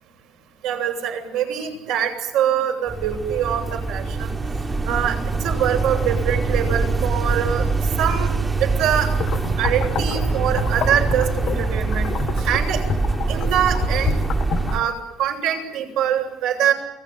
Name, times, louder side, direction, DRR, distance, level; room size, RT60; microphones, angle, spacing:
voice 1, 0.6-4.3 4.8-5.2 5.4-7.6 8.0-8.3 8.6-9.1 9.6-12.1 12.4-12.8 13.3-14.1 14.7-16.7, right 9 dB, 75° right, 2 dB, 7.7 m, -23 dB
sound 1, 2.9-14.8, right 3 dB, 20° right, 1.5 m, -24 dB
sound 2, 9.1-14.9, left 9 dB, 50° left, 1.4 m, -30 dB
29.5 x 20.0 x 9.4 m, 0.92 s
cardioid pair, 145°, 0 cm